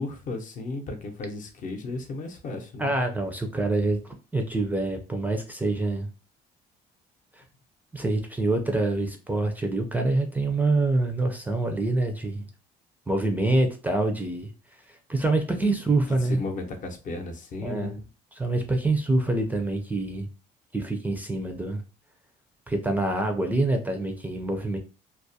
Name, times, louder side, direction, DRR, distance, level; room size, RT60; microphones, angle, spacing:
voice 1, 0.0-2.9 16.1-18.0, left 3 dB, 50° left, 4 dB, 0.6 m, -34 dB
voice 2, 2.8-4.0 4.3-6.1 7.3-7.4 7.9-12.5 13.1-14.5 14.9-16.4 17.6-18.0 18.3-20.3 20.7-21.8 22.7-24.8, right 2 dB, 10° right, 4 dB, 0.4 m, -26 dB
2.3 x 2.0 x 2.6 m, 0.33 s
cardioid pair, 110°, 17 cm